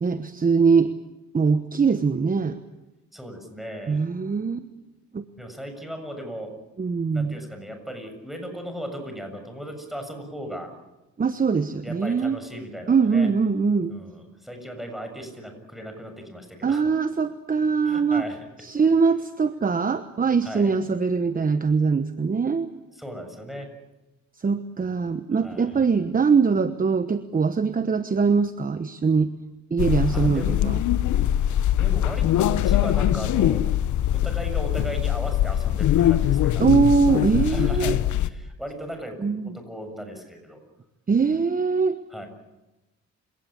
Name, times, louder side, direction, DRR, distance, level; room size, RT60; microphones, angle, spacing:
voice 1, 0.0-0.9 1.3-2.6 3.9-4.7 5.1-5.2 6.8-7.4 11.2-12.4 12.9-13.9 16.6-18.2 18.6-22.7 24.4-29.3 29.7-30.8 36.6-38.0 39.2-39.5 41.1-42.0, right 5 dB, 30° right, 11 dB, 1.1 m, -22 dB
voice 2, 3.1-4.1 5.4-6.5 7.1-10.7 11.8-13.3 13.9-16.9 17.8-18.5 20.4-20.7 22.9-23.7 25.3-25.8 30.1-30.5 31.8-33.6 34.1-36.7 37.4-40.6 42.1-42.3, equal, ahead, 5 dB, 7.0 m, -37 dB
sound 1, 29.8-38.3, left 12 dB, 75° left, 1.0 m, -22 dB
29.0 x 18.0 x 8.8 m, 1.0 s
cardioid pair, 90°, 30 cm